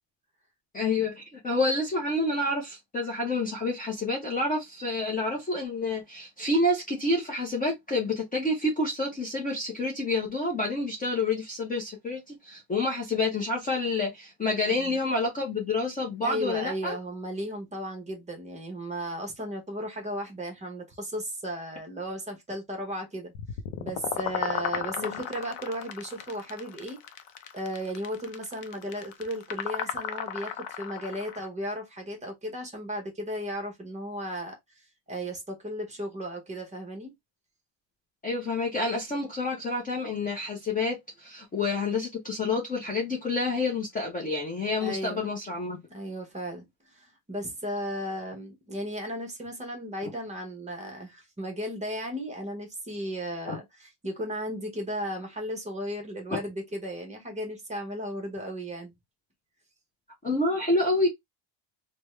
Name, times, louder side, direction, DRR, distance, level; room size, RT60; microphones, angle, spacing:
voice 1, 0.7-16.9 25.0-25.2 38.2-45.8 53.5-53.6 60.2-61.1, left 2 dB, 20° left, 0.6 m, -28 dB
voice 2, 14.7-15.0 16.2-23.3 23.8-27.0 27.5-37.1 44.8-45.3 45.9-58.9, equal, 15° right, 0.8 m, -35 dB
sound 1, 23.3-31.5, left 9 dB, 65° left, 0.7 m, -35 dB
3.4 x 2.2 x 3.0 m
cardioid pair, 145°, 49 cm